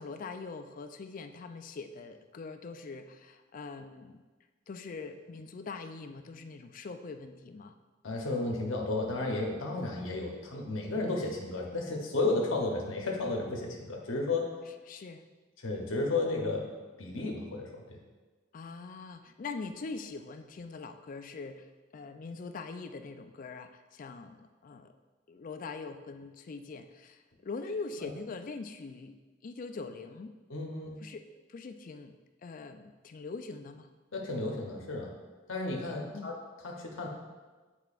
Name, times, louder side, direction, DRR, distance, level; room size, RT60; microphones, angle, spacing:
voice 1, 0.0-4.2 4.7-7.8 14.9-15.2 18.5-24.9 25.3-29.1 29.4-30.3 31.0-32.2 32.4-33.9 36.1-36.4, left 4 dB, 45° left, 8 dB, 0.4 m, -43 dB
voice 2, 8.0-14.7 15.6-16.7 17.0-18.0 28.0-28.1 30.5-30.9 34.1-35.1 35.5-36.4 36.6-37.1, left 2 dB, 80° left, 0 dB, 0.8 m, -33 dB
8.7 x 4.5 x 2.4 m, 1.3 s
head